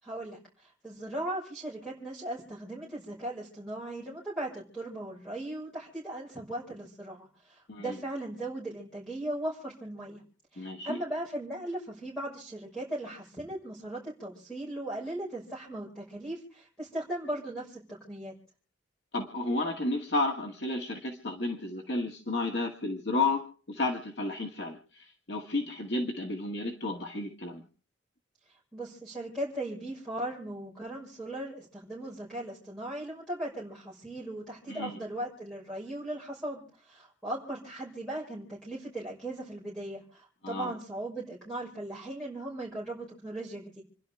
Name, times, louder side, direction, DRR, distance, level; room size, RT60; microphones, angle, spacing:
voice 1, 0.0-10.2 10.5-18.3 28.7-43.8, right 1 dB, 5° left, -6 dB, 5.8 m, -38 dB
voice 2, 10.6-11.0 19.1-27.6 34.7-35.0 40.4-40.7, left 2 dB, 65° left, 2 dB, 1.9 m, -32 dB
29.0 x 11.5 x 3.5 m, 0.41 s
head